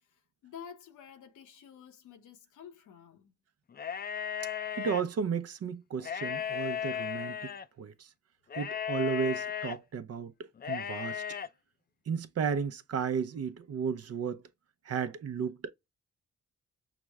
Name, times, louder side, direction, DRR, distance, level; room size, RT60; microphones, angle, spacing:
voice 1, 0.1-3.3, left 8 dB, 85° left, 0.9 m, -50 dB
sound 1, 3.7-5.0 6.0-7.7 8.5-9.8 10.6-11.5, left 8 dB, 30° left, 0.5 m, -35 dB
voice 2, 4.8-7.5 7.8-7.9 8.6-10.3 10.7-11.2 12.1-14.4 14.9-15.7, right 6 dB, 55° right, 0.7 m, -33 dB
5.9 x 2.1 x 3.4 m
cardioid pair, 65°, 30 cm